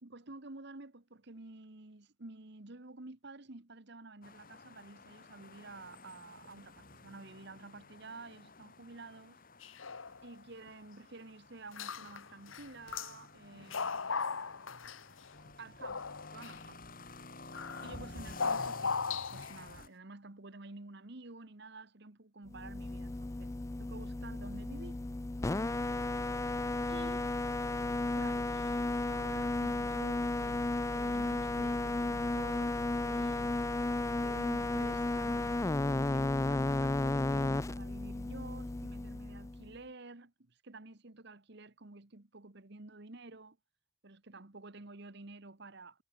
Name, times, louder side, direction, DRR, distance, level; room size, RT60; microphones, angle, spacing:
voice 1, 0.0-9.4 10.2-14.2 15.4-16.1 16.3-16.8 17.8-23.5 23.8-25.0 26.9-27.2 28.1-30.6 30.9-33.6 34.2-43.6 44.0-46.0, right 3 dB, 60° right, 1.5 m, -51 dB
Crossing a City Intersection by Foot, 4.2-19.9, left 3 dB, 45° left, 4.6 m, -52 dB
sound 1, 9.6-10.3 10.7-10.8 11.7-12.2 12.5-13.2 13.5-15.3 15.8-16.6 17.5-17.9 18.4-19.6, left 5 dB, 85° left, 1.3 m, -37 dB
sound 2, 22.5-39.7, left 2 dB, 15° left, 0.3 m, -33 dB
head